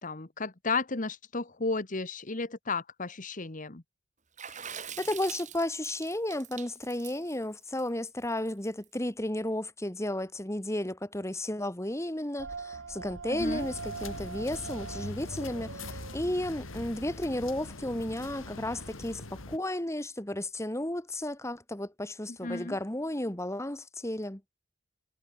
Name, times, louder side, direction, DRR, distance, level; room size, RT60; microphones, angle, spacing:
voice 1, 0.0-3.8 13.3-13.7 22.3-22.8, left 3 dB, 40° left, 1.4 m, -33 dB
Water / Splash splatter, 4.4-8.8, right 8 dB, 35° right, 5.9 m, -44 dB
voice 2, 4.5-24.4, left 1 dB, 15° left, 1.8 m, -33 dB
sound 1, 12.4-17.4, right 4 dB, 65° right, 0.9 m, -42 dB
sound 2, 13.4-19.6, left 2 dB, 85° left, 3.1 m, -42 dB
head